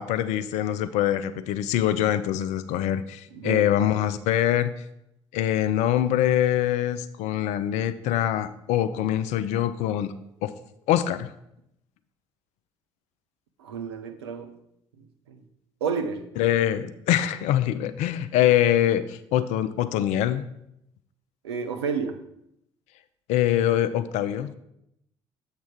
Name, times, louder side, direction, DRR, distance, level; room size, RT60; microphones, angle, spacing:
voice 1, 0.0-4.7 5.3-10.1 10.4-10.5 10.9-11.3 16.4-20.4 23.3-24.5, left 12 dB, 55° left, 12 dB, 0.5 m, -24 dB
voice 2, 3.3-3.7 13.6-14.5 15.3-15.4 15.8-16.3 18.4-18.5 21.4-22.2, right 6 dB, 75° right, 6 dB, 0.6 m, -30 dB
7.4 x 3.5 x 5.9 m, 0.79 s
figure-of-eight pair, 50°, 14 cm